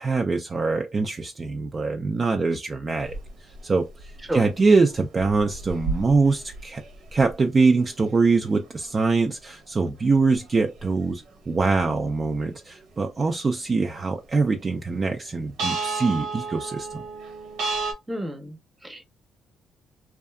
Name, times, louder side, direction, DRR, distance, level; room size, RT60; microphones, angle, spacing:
voice 1, 0.0-3.2 3.6-6.8 7.1-17.0, right 4 dB, 35° right, 0.3 m, -23 dB
sound 1, 3.1-3.3 3.6-3.7 4.0-4.5 5.1-7.3 7.6-7.8 8.1-8.2 10.4-10.5 11.1-11.2 11.6-11.8 15.6-17.9, right 4 dB, 80° right, 0.9 m, -31 dB
voice 2, 18.1-19.1, right 1 dB, 10° right, 0.7 m, -31 dB
2.6 x 2.3 x 2.2 m
cardioid pair, 90°, 0 cm